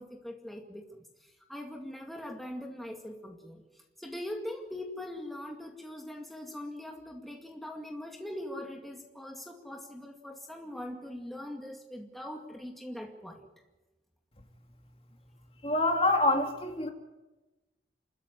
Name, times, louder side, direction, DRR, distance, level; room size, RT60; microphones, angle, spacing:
voice 1, 0.0-13.4, left 1 dB, ahead, 1 dB, 2.2 m, -42 dB
voice 2, 15.6-16.9, left 2 dB, 30° left, 3 dB, 2.8 m, -26 dB
30.0 x 13.0 x 9.9 m, 1.1 s
head